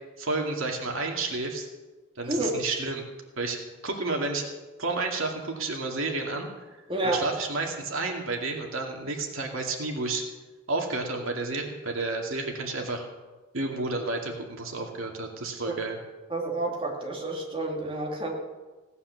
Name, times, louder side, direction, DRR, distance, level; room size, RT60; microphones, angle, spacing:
voice 1, 0.2-1.7 2.2-3.0 3.4-3.6 3.8-4.5 4.8-6.5 7.0-10.2 10.7-13.1 13.5-16.0, right 3 dB, 80° right, 1 dB, 2.4 m, -31 dB
voice 2, 2.3-2.6 6.9-7.2 15.7-15.8 16.3-18.3, right 2 dB, 25° right, -1 dB, 2.4 m, -29 dB
17.5 x 9.6 x 7.0 m, 1.2 s
head